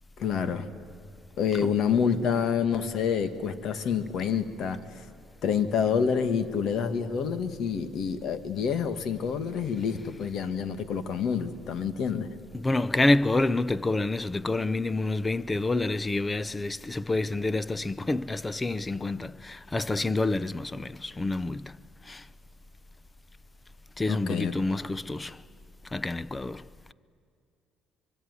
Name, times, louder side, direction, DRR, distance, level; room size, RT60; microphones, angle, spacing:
voice 1, 0.2-0.7 1.4-5.1 5.4-12.3 24.1-24.5, left 7 dB, 60° left, 1.9 m, -28 dB
voice 2, 12.5-21.8 22.0-22.3 24.0-25.4 25.8-26.9, left 2 dB, 15° left, 0.6 m, -28 dB
24.5 x 23.5 x 9.8 m
cardioid pair, 120°, 0 cm